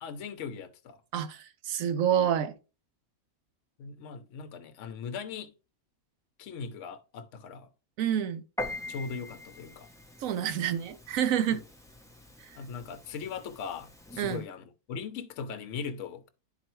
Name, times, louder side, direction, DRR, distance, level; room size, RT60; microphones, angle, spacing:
voice 1, 0.0-1.0 3.8-5.5 6.4-7.7 8.9-9.9 11.5-11.6 12.5-16.3, left 6 dB, 60° left, 1.0 m, -39 dB
voice 2, 1.1-2.5 8.0-8.4 10.2-11.6 14.2-14.4, right 9 dB, 70° right, 1.0 m, -28 dB
Piano, 8.6-14.4, left 2 dB, 5° left, 0.4 m, -43 dB
10.5 x 4.3 x 3.1 m
omnidirectional pair, 1.5 m